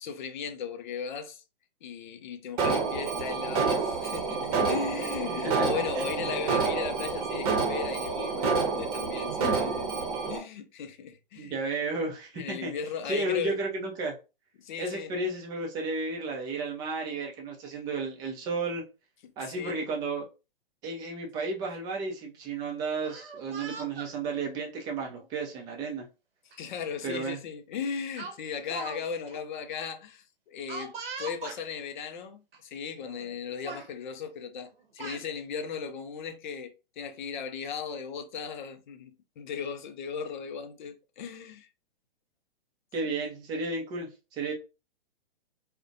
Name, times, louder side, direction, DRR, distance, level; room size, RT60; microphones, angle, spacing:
voice 1, 0.0-1.4 1.8-11.6 12.4-13.6 14.6-15.2 19.2-19.8 26.6-30.9 31.2-41.7, left 6 dB, 50° left, 0.5 m, -37 dB
Alarm, 2.6-10.4, right 4 dB, 40° right, 0.7 m, -28 dB
voice 2, 5.6-6.3 11.4-12.7 13.1-14.1 14.8-18.8 19.4-20.3 20.8-26.1 27.0-27.4 42.9-44.5, right 3 dB, 15° right, 0.4 m, -33 dB
Speech, 23.0-24.1 25.0-25.2 26.5-26.6 27.0-27.2 28.2-29.0 29.3-29.4 30.7-31.6 32.5-32.6 33.0-33.3 33.6-33.9 34.7-35.2, right 4 dB, 70° right, 0.7 m, -41 dB
2.4 x 2.1 x 2.6 m
hypercardioid pair, 120°, 30 cm